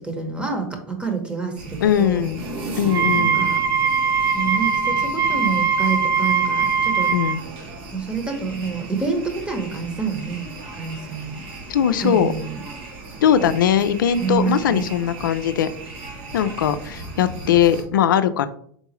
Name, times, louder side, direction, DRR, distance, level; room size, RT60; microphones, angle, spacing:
voice 1, 0.0-2.2 3.1-3.6 4.3-7.1 7.9-11.4 12.0-12.6 14.2-14.9, right 5 dB, 10° right, 4 dB, 1.0 m, -27 dB
sound 1, 1.6-17.8, right 2 dB, 55° right, 1.3 m, -36 dB
voice 2, 1.8-2.4 2.8-3.5 7.1-7.4 11.7-12.3 13.2-15.7 16.3-18.5, left 9 dB, 90° left, 12 dB, 0.4 m, -20 dB
Wind instrument woodwind instrument, 2.9-7.4, right 6 dB, 30° right, 0.6 m, -21 dB
3.9 x 3.5 x 3.0 m, 0.62 s
hypercardioid pair, 105°, 11 cm